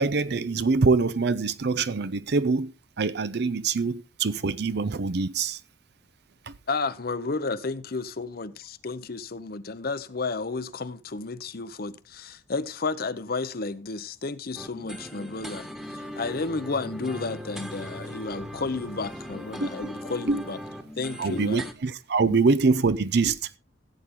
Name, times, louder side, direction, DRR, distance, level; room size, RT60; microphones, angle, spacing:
voice 1, 0.0-5.6 6.5-6.6 19.6-19.9 20.3-20.4 21.2-23.6, right 4 dB, 60° right, 0.6 m, -24 dB
voice 2, 6.7-20.6 21.0-21.6 22.3-22.4, left 3 dB, 55° left, 0.8 m, -32 dB
sound 1, 14.6-21.7, equal, 5° right, 1.3 m, -39 dB
15.5 x 8.4 x 3.7 m
head